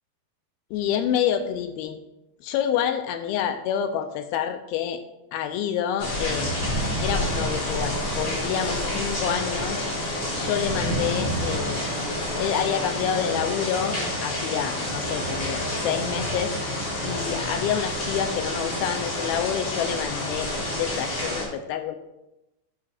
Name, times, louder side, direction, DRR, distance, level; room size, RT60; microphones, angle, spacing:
voice 1, 0.7-2.0 2.4-5.0 5.3-6.5 7.0-9.8 10.4-11.8 12.4-16.5 17.0-22.0, left 9 dB, 80° left, 7 dB, 2.3 m, -28 dB
sound 1, 6.0-21.4, left 1 dB, 40° left, 4.3 m, -28 dB
11.5 x 10.5 x 2.5 m, 0.90 s
omnidirectional pair, 4.8 m